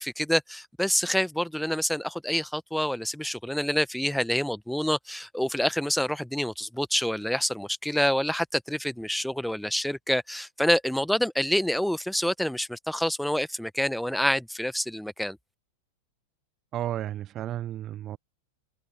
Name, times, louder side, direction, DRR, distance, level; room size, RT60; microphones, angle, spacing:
voice 1, 0.0-15.4, equal, ahead, 1.2 m, -27 dB
voice 2, 16.7-18.2, right 12 dB, 30° right, 0.7 m, -33 dB
figure-of-eight pair, 90°, 0 cm